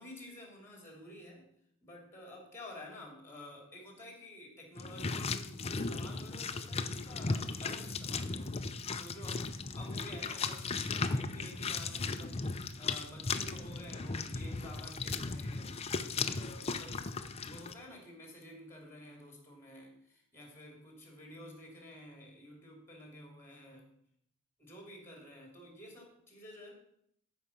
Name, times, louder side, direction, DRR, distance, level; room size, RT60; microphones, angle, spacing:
voice 1, 0.0-1.5 1.8-8.5 8.9-15.8 16.1-17.0 17.4-23.9 24.6-26.7, left 1 dB, 10° left, 1 dB, 3.0 m, -51 dB
sound 1, 4.8-17.7, left 4 dB, 30° left, 0.6 m, -37 dB
14.0 x 5.1 x 5.9 m, 0.71 s
head